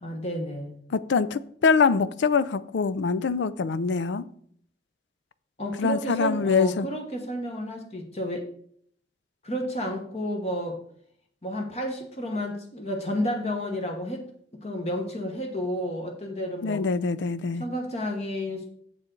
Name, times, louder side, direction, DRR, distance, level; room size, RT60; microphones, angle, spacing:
voice 1, 0.0-0.8 5.6-8.4 9.4-10.8 11.4-14.3 14.6-16.8 17.5-18.7, equal, 35° left, 1.1 m, -31 dB
voice 2, 0.9-4.2 5.8-6.9 16.6-17.6, left 5 dB, 85° left, 0.4 m, -24 dB
7.7 x 7.2 x 3.8 m
head